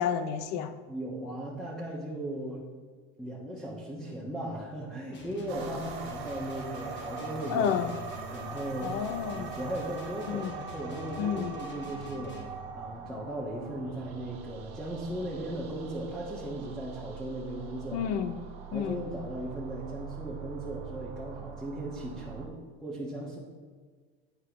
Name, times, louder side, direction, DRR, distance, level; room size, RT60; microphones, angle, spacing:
voice 1, 0.0-0.8 7.5-7.9 8.8-9.5 10.3-10.5 11.2-11.5 17.9-18.4 18.7-19.1, left 8 dB, 60° left, 0.5 m, -30 dB
voice 2, 0.9-2.6 3.2-7.7 8.3-9.0 9.3-12.4 12.7-18.1 18.7-22.5 22.8-23.4, right 1 dB, ahead, 1.2 m, -37 dB
sound 1, 5.1-12.6, left 3 dB, 35° left, 1.1 m, -47 dB
sound 2, 5.5-22.5, right 6 dB, 90° right, 0.8 m, -42 dB
9.9 x 4.5 x 3.0 m
supercardioid pair, 95°, 30 cm